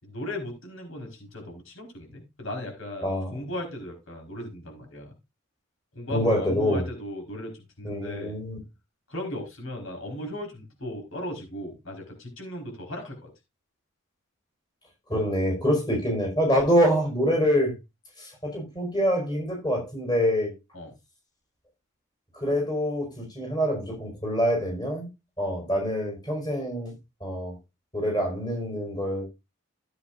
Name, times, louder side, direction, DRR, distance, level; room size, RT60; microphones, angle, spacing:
voice 1, 0.0-5.1 5.9-8.4 9.1-13.3 20.7-20.9, left 1 dB, 80° left, 4.5 m, -37 dB
voice 2, 3.0-3.4 6.1-6.8 7.8-8.6 15.1-17.7 18.2-20.5 22.3-25.1 25.4-26.9 27.2-27.6 27.9-29.3, equal, 20° left, 5.0 m, -25 dB
15.0 x 8.2 x 2.5 m
head